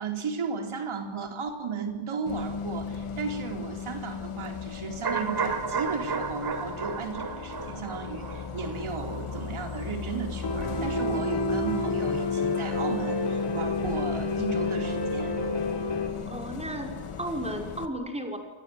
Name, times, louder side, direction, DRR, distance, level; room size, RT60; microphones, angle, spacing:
voice 1, 0.0-15.4, right 5 dB, 75° right, 4 dB, 4.2 m, -35 dB
Bus, 2.3-17.9, left 6 dB, 80° left, 2.6 m, -36 dB
sound 1, 5.0-10.9 11.2-11.3, right 5 dB, 50° right, 4.8 m, -34 dB
Piano, 10.4-16.1, left 2 dB, 55° left, 5.2 m, -29 dB
voice 2, 16.3-18.4, right 1 dB, 10° right, 3 dB, 5.7 m, -34 dB
29.0 x 25.0 x 8.1 m, 1.3 s
wide cardioid pair, 140°, 49 cm